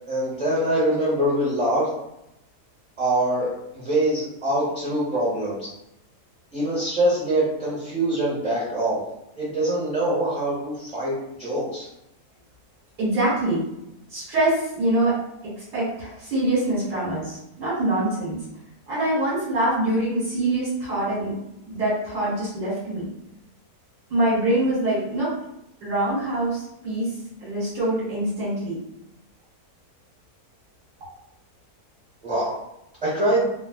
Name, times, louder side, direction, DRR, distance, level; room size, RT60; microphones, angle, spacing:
voice 1, 0.1-1.9 3.0-5.7 6.5-9.0 9.4-11.1 11.4-11.9 32.2-32.5 33.0-33.4, right 1 dB, 25° right, -8 dB, 1.1 m, -24 dB
voice 2, 13.0-13.6 14.1-15.2 15.4-18.4 18.9-21.3 21.7-23.0 24.1-25.3 25.8-28.8, right 1 dB, 90° right, -10 dB, 2.0 m, -24 dB
3.6 x 2.2 x 2.3 m, 0.83 s
omnidirectional pair, 1.7 m